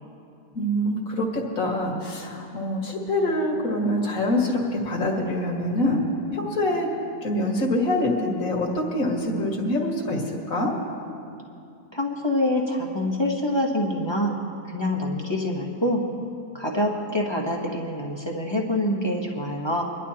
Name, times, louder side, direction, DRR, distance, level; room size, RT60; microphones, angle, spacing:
voice 1, 0.5-6.1 6.3-6.9 7.2-10.8, left 1 dB, 55° left, -1 dB, 2.1 m, -25 dB
voice 2, 11.9-14.4 14.7-16.0 16.5-19.8, left 1 dB, 20° left, -1 dB, 1.0 m, -25 dB
24.5 x 11.5 x 2.9 m, 2.5 s
omnidirectional pair, 1.8 m